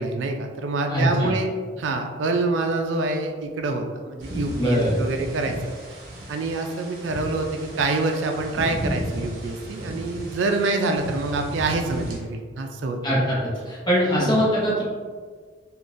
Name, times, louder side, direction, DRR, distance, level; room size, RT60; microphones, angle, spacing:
voice 1, 0.0-1.5 1.8-5.6 5.9-6.0 6.3-13.2 14.1-14.4, right 3 dB, 80° right, 4 dB, 0.4 m, -26 dB
voice 2, 0.9-1.4 4.5-4.9 13.0-13.4 13.7-14.8, equal, 25° left, -6 dB, 0.9 m, -21 dB
sound 1, 4.2-12.2, equal, 55° right, 0.9 m, -34 dB
3.7 x 2.4 x 2.5 m, 1.6 s
head